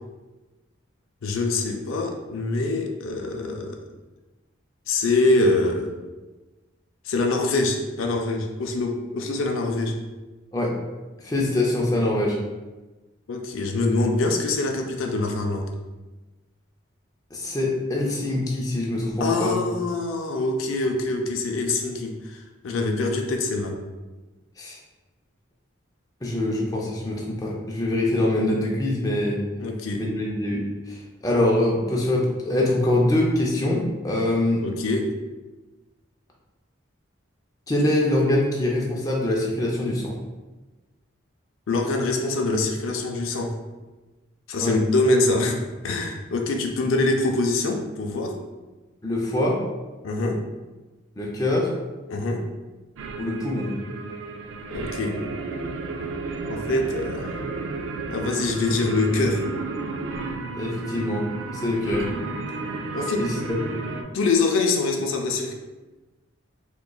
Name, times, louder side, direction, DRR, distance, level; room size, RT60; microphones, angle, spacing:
voice 1, 1.2-3.8 4.9-5.9 7.1-10.0 13.3-15.7 19.2-23.8 29.6-30.0 34.6-35.1 41.7-43.5 44.5-48.4 50.0-50.4 52.1-52.4 54.7-55.2 56.5-57.4 58.1-59.4 62.9-63.3 64.1-65.5, left 2 dB, 75° left, 2 dB, 0.4 m, -24 dB
voice 2, 11.2-12.4 17.3-19.6 24.6-24.8 26.2-29.4 29.9-34.6 37.7-40.2 44.6-44.7 49.0-49.6 51.2-51.7 53.2-53.7 60.6-62.0 63.2-63.6, left 1 dB, 15° left, -3 dB, 0.4 m, -24 dB
sound 1, 53.0-64.0, right 3 dB, 70° right, 0.3 m, -32 dB
3.7 x 2.9 x 2.2 m, 1.2 s
head